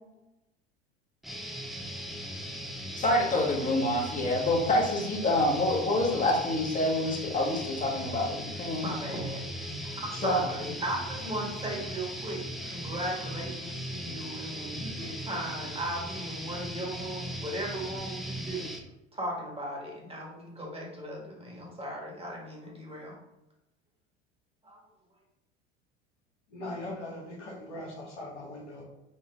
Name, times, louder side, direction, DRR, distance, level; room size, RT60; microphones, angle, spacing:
sound 1, 1.2-18.8, equal, ahead, 0.6 m, -38 dB
voice 1, 3.0-8.9 9.7-9.8 10.2-10.4, left 1 dB, 25° left, 0 dB, 1.2 m, -27 dB
voice 2, 8.7-9.5 9.8-18.7 19.1-23.2 24.6-24.8, right 1 dB, 15° right, -2 dB, 1.5 m, -37 dB
voice 3, 26.5-28.8, left 1 dB, 80° left, -3 dB, 1.3 m, -40 dB
4.1 x 2.5 x 3.6 m, 0.91 s
hypercardioid pair, 80°, 34 cm